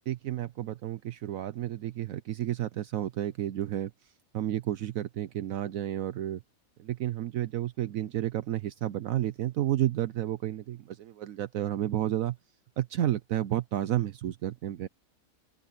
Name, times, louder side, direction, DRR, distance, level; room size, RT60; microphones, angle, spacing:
voice 1, 0.1-3.9 4.3-6.4 6.8-12.4 12.8-14.9, right 12 dB, 75° right, 1.1 m, -31 dB
open air
omnidirectional pair, 1.5 m